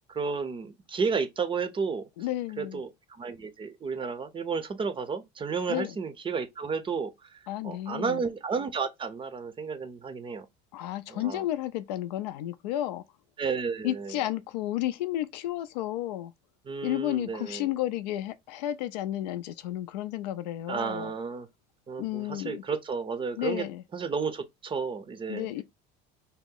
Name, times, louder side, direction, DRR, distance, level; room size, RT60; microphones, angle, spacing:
voice 1, 0.1-2.1 2.6-7.4 7.6-10.5 11.1-11.4 13.4-14.2 16.7-17.7 20.7-21.5 21.9-23.7 23.9-25.5, right 5 dB, 25° right, 0.5 m, -32 dB
voice 2, 2.2-2.8 5.7-6.0 7.5-8.2 10.7-13.0 13.8-16.3 16.8-21.1 22.0-22.6 23.4-23.8 25.3-25.6, left 14 dB, 90° left, 0.4 m, -32 dB
2.8 x 2.1 x 3.6 m
supercardioid pair, 100°, 21 cm